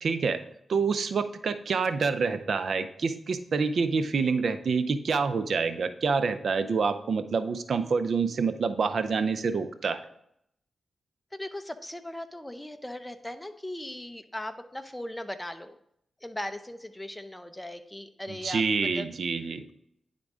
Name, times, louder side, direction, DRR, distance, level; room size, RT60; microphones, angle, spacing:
voice 1, 0.0-0.4 0.7-10.0 18.3-19.6, right 5 dB, 70° right, 11 dB, 0.5 m, -27 dB
voice 2, 11.3-15.7 16.2-18.6 19.0-19.1, left 1 dB, 10° left, 9 dB, 0.7 m, -38 dB
10.0 x 3.7 x 3.6 m, 0.73 s
cardioid pair, 50°, 0 cm